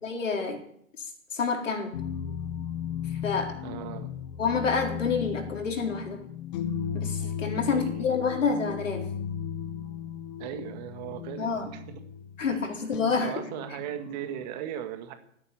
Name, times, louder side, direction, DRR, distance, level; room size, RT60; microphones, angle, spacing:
voice 1, 0.0-0.6 1.3-1.9 3.2-3.6 4.4-6.2 6.9-9.1 11.4-11.6 12.4-13.5, left 5 dB, 65° left, 3 dB, 4.4 m, -28 dB
sound 1, 1.9-14.5, left 8 dB, 30° left, 1.2 m, -36 dB
voice 2, 3.6-4.1 7.6-8.1 10.4-12.0 12.5-12.6 13.2-15.1, right 10 dB, 30° right, 8 dB, 1.7 m, -38 dB
14.5 x 9.9 x 8.7 m, 0.68 s
figure-of-eight pair, 125°, 41 cm